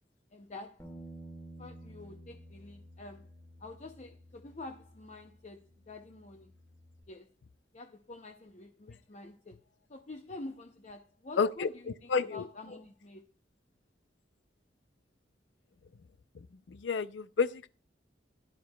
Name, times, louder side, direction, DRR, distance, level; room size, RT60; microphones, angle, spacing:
voice 1, 0.3-0.9 1.6-3.3 3.6-6.5 7.1-7.3 7.7-9.6 9.9-13.3, left 2 dB, 40° left, 0.6 m, -47 dB
Bass guitar, 0.8-7.0, right 1 dB, 15° left, 1.6 m, -52 dB
voice 2, 11.4-11.7 12.1-12.5 16.7-17.7, left 5 dB, 85° left, 0.5 m, -30 dB
16.5 x 10.5 x 2.2 m
head